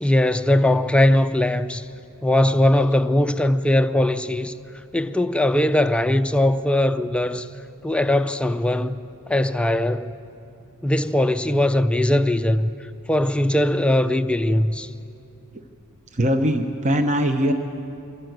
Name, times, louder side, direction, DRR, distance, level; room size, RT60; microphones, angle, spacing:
voice 1, 0.0-1.9 2.2-4.5 4.9-7.5 7.8-9.0 9.3-10.1 10.8-12.7 13.1-14.9, left 1 dB, 5° left, 0.4 m, -20 dB
voice 2, 16.1-17.5, equal, 35° right, 0.8 m, -21 dB
23.0 x 15.5 x 7.9 m
head